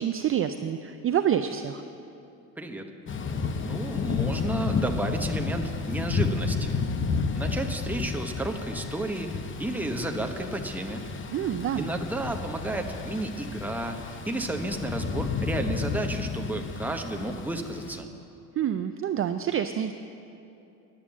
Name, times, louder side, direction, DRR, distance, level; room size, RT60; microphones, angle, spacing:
voice 1, 0.0-1.8 11.3-11.9 18.6-19.9, right 9 dB, 35° right, 9 dB, 0.4 m, -27 dB
voice 2, 2.6-2.9 3.6-6.8 7.3-11.0 11.8-18.1, right 1 dB, 5° right, 3 dB, 1.0 m, -32 dB
Thunder / Rain, 3.1-18.0, left 5 dB, 35° left, 0.8 m, -32 dB
11.0 x 8.9 x 7.3 m, 2.8 s
cardioid pair, 105°, 37 cm